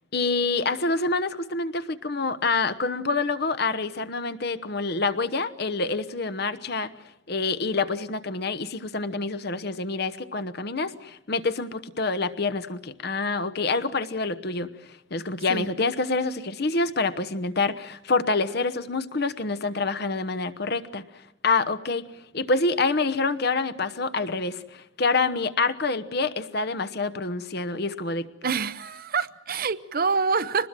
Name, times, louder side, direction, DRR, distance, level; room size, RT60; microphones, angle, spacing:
voice 1, 0.1-6.9 7.3-14.7 15.1-21.0 21.4-22.0 22.3-28.3, left 3 dB, 55° left, 1.1 m, -27 dB
voice 2, 28.4-30.7, right 5 dB, 50° right, 0.8 m, -26 dB
24.0 x 20.5 x 7.6 m
head